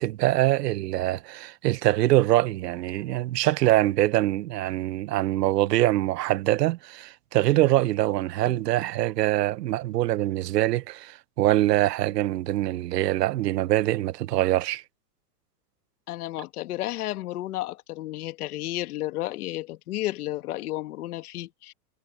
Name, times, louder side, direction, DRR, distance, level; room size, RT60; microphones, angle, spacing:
voice 1, 0.0-14.8, right 15 dB, 85° right, 1.1 m, -24 dB
voice 2, 16.1-21.7, left 15 dB, 65° left, 1.8 m, -32 dB
supercardioid pair, 175°, 47 cm